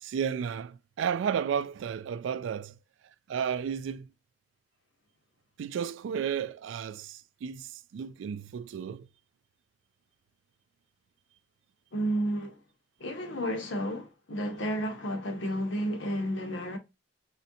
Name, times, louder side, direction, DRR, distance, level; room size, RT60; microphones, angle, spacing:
voice 1, 0.0-2.7 3.3-4.1 5.6-9.1, right 7 dB, 85° right, 0.3 m, -33 dB
voice 2, 11.9-12.6 13.0-16.8, equal, 90° left, 0.9 m, -31 dB
4.2 x 2.6 x 2.6 m
head